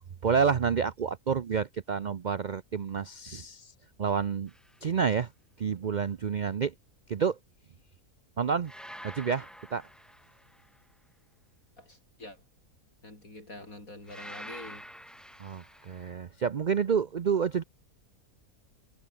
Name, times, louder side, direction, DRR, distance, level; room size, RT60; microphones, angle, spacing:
voice 1, 0.2-3.7 4.0-4.5 4.8-5.3 5.6-6.7 7.1-7.4 8.4-8.7 9.0-9.8 15.4-17.6, right 6 dB, 60° right, 0.4 m, -29 dB
sound 1, 4.5-4.8 8.6-10.8 14.1-16.1, equal, ahead, 2.9 m, -47 dB
voice 2, 11.8-12.4 13.0-14.9, left 1 dB, 60° left, 8.4 m, -46 dB
omnidirectional pair, 1.6 m